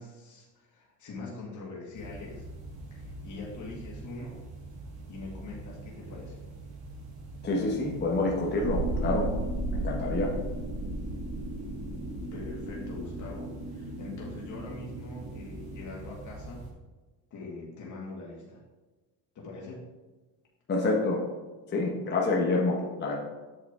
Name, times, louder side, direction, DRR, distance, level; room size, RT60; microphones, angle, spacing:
voice 1, 0.0-2.4 2.9-4.4 5.1-6.4 12.3-16.7 17.3-18.6 19.4-19.9, left 3 dB, 40° left, -4 dB, 2.0 m, -43 dB
sound 1, 1.9-16.7, right 2 dB, 65° right, 2.5 m, -44 dB
voice 2, 7.4-9.3 9.7-10.3 20.7-21.2 21.7-23.2, left 2 dB, 20° left, -2 dB, 1.0 m, -27 dB
sound 2, 8.6-15.8, right 2 dB, 20° right, 2.3 m, -35 dB
8.0 x 6.6 x 3.6 m, 1.2 s
cardioid pair, 145°, 48 cm